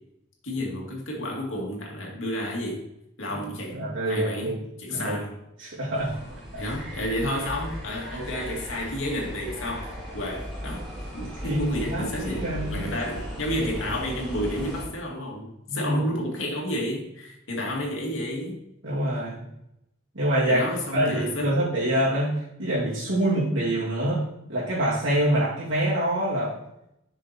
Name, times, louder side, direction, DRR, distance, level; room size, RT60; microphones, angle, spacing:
voice 1, 0.4-2.8 3.2-3.8 4.1-5.3 6.6-10.9 11.1-18.6 20.5-21.6, left 1 dB, 75° left, -1 dB, 2.4 m, -31 dB
voice 2, 3.7-4.6 4.9-5.2 5.6-6.1 6.5-6.6 11.4-12.9 15.7-16.0 18.8-19.4 20.1-26.5, right 1 dB, 75° right, -9 dB, 2.8 m, -26 dB
sound 1, 5.9-14.9, equal, 5° right, 3.3 m, -37 dB
7.4 x 6.2 x 4.4 m, 0.81 s
head